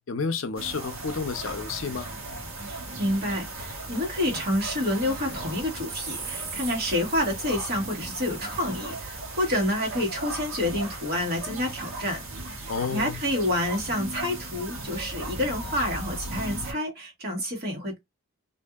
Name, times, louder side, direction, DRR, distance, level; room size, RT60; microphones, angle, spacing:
voice 1, 0.1-2.1 12.7-13.2, left 5 dB, 65° left, 0.5 m, -30 dB
sound 1, 0.6-16.7, right 2 dB, 70° right, 1.2 m, -36 dB
voice 2, 2.6-12.2 12.7-18.0, left 1 dB, 45° right, 1.4 m, -28 dB
2.6 x 2.6 x 2.3 m
head